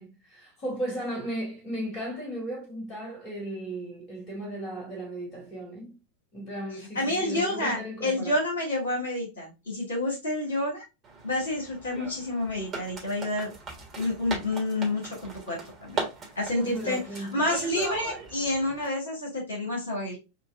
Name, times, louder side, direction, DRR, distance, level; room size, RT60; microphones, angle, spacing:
voice 1, 0.0-6.0 6.3-8.4 16.6-17.4, right 1 dB, 35° left, 2.2 m, -36 dB
voice 2, 6.9-10.8 11.2-13.5 14.0-16.0 16.4-20.2, left 1 dB, 70° left, 2.0 m, -29 dB
sound 1, 11.0-18.9, right 4 dB, 25° right, 1.4 m, -39 dB
5.5 x 2.4 x 2.5 m
figure-of-eight pair, 90°, 0 cm